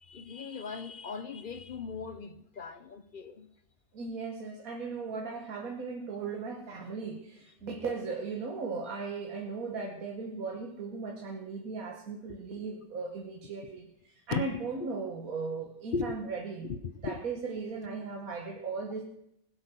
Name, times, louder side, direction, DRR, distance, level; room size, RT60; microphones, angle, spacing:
voice 1, 0.0-3.5 14.3-14.4 15.9-16.2 16.6-17.2, left 5 dB, 50° left, 12 dB, 0.7 m, -37 dB
voice 2, 3.9-16.7 17.0-19.0, right 4 dB, 80° right, 2 dB, 1.7 m, -37 dB
20.0 x 8.1 x 6.1 m, 0.78 s
omnidirectional pair, 1.5 m